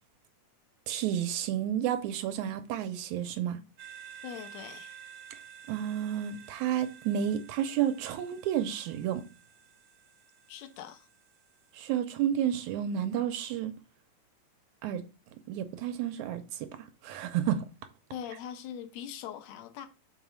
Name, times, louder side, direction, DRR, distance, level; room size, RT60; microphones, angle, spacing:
voice 1, 0.9-3.6 5.7-9.2 11.7-13.7 14.8-15.0 15.5-16.7 17.0-17.7, right 10 dB, 80° right, 2.0 m, -31 dB
sound 1, 3.8-12.0, right 8 dB, 60° right, 1.3 m, -52 dB
voice 2, 4.2-5.0 10.5-11.1 18.1-19.9, left 9 dB, 70° left, 1.9 m, -42 dB
5.5 x 4.1 x 6.1 m
omnidirectional pair, 3.6 m